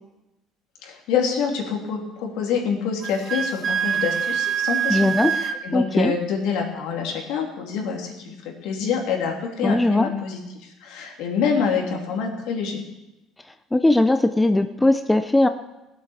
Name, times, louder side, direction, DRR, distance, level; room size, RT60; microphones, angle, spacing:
voice 1, 0.8-12.8, left 6 dB, 75° left, 1 dB, 2.9 m, -26 dB
Wind instrument woodwind instrument, 3.0-5.6, right 8 dB, 40° right, 0.9 m, -24 dB
voice 2, 4.9-5.3 5.7-6.1 9.6-10.1 13.7-15.5, left 2 dB, 10° left, 9 dB, 0.6 m, -19 dB
17.0 x 8.2 x 7.2 m, 0.98 s
cardioid pair, 120°, 0 cm